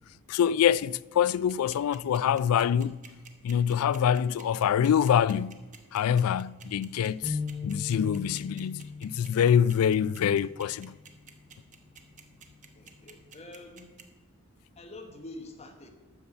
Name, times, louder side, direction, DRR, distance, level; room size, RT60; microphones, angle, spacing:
voice 1, 0.3-3.0 3.4-5.6 5.9-7.4 7.6-11.0, left 8 dB, 90° left, 0.3 m, -25 dB
sound 1, 1.3-14.0, right 7 dB, 35° right, 1.1 m, -49 dB
sound 2, 7.2-10.7, left 4 dB, 5° right, 2.1 m, -38 dB
voice 2, 12.7-13.9 14.8-15.9, left 2 dB, 30° left, 1.1 m, -46 dB
12.5 x 5.6 x 7.8 m
head